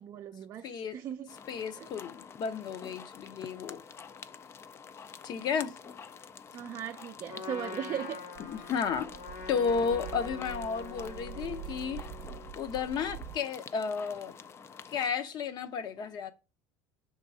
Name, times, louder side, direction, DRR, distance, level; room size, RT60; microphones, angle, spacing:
voice 1, 0.0-1.3 1.8-1.9 6.5-8.3, right 9 dB, 35° right, 0.4 m, -38 dB
voice 2, 0.6-1.0 1.5-3.8 5.2-5.8 8.5-9.1 9.5-12.1 12.6-14.4 14.9-16.3, left 6 dB, 45° left, 0.8 m, -33 dB
sound 1, 1.3-15.1, left 6 dB, 25° left, 0.4 m, -48 dB
Trumpet, 7.3-12.5, left 5 dB, 90° left, 2.2 m, -44 dB
sound 2, 8.4-13.4, right 11 dB, 85° right, 0.6 m, -45 dB
5.2 x 3.7 x 5.3 m
supercardioid pair, 120°, 10 cm